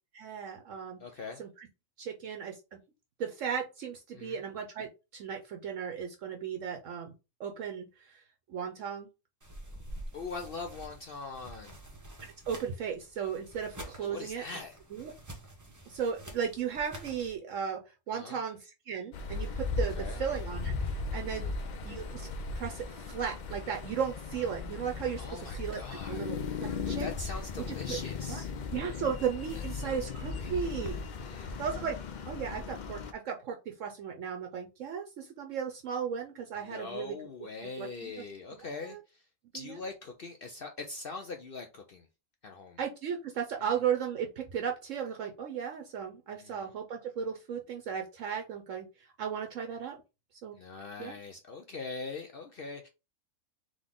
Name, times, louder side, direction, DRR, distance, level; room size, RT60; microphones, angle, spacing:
voice 1, 0.1-1.0 1.4-1.7 2.0-2.8 3.2-7.1 7.4-8.2 8.5-9.1 12.5-14.4 14.9-15.1 15.9-21.5 21.8-22.3 22.6-25.8 26.1-27.1 27.6-28.0 28.3-28.4 28.7-31.0 31.4-32.0 32.3-37.2 37.6-38.2 38.5-39.0 39.5-39.8 42.8-50.0 50.4-50.5 51.0-51.2, right 7 dB, 70° right, 3 dB, 1.0 m, -36 dB
voice 2, 1.0-1.4 4.1-4.4 10.1-11.8 14.0-14.8 18.1-18.4 20.0-20.2 25.2-26.2 26.9-28.5 29.7-30.0 30.3-30.6 31.2-31.5 36.6-39.0 39.5-42.1 42.4-42.8 46.4-46.7 50.6-52.9, left 4 dB, 55° left, 4 dB, 0.6 m, -42 dB
sound 1, 9.4-17.4, right 1 dB, 15° right, 0.8 m, -48 dB
sound 2, 19.1-33.1, left 4 dB, 85° left, 0.4 m, -37 dB
3.9 x 3.2 x 3.6 m, 0.27 s
omnidirectional pair, 1.5 m